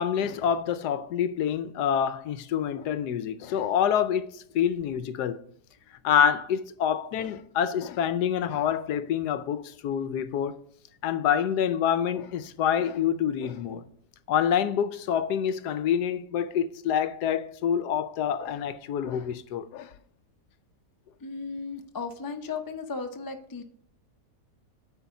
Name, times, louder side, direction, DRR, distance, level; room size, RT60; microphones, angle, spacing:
voice 1, 0.0-5.4 6.0-10.5 11.0-13.8 14.3-19.9, left 8 dB, 75° left, 1.2 m, -27 dB
voice 2, 21.2-23.7, left 4 dB, 30° left, 0.4 m, -35 dB
9.5 x 4.1 x 7.0 m
omnidirectional pair, 1.8 m